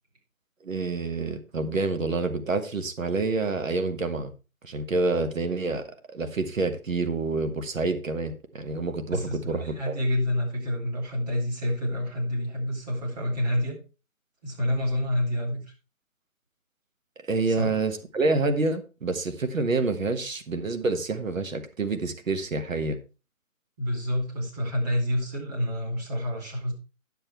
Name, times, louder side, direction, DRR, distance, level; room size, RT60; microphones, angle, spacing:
voice 1, 0.6-4.3 4.6-10.0 17.3-23.0, right 3 dB, 70° right, 9 dB, 1.6 m, -28 dB
voice 2, 9.1-13.8 14.4-15.6 17.5-17.7 23.8-26.7, left 1 dB, 30° right, -1 dB, 3.4 m, -28 dB
10.0 x 7.4 x 4.4 m, 0.31 s
hypercardioid pair, 160°, 41 cm